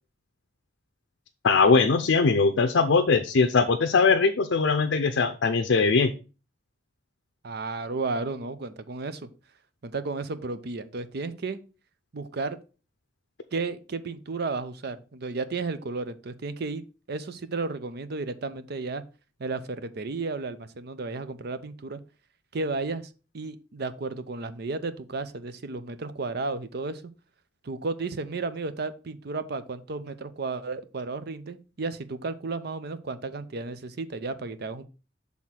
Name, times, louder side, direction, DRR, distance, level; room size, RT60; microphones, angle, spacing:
voice 1, 1.4-6.1, left 4 dB, 85° left, 6 dB, 0.6 m, -21 dB
voice 2, 7.4-9.3 9.8-11.6 12.1-12.6 13.5-19.0 19.4-22.0 22.5-27.0 27.6-34.8, right 3 dB, 60° right, 13 dB, 0.6 m, -33 dB
6.3 x 3.6 x 5.7 m, 0.34 s
head